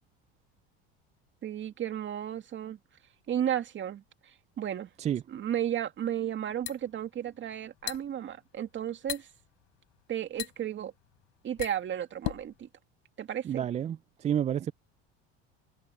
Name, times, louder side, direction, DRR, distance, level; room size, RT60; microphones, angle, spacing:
voice 1, 1.4-2.8 3.3-4.9 5.3-9.3 10.1-10.9 11.4-12.7 13.2-13.7, right 10 dB, 40° right, 2.2 m, -34 dB
sound 1, 6.3-12.6, left 28 dB, 75° left, 4.7 m, -40 dB
voice 2, 13.5-14.7, right 10 dB, 25° right, 0.3 m, -30 dB
supercardioid pair, 110°, 30 cm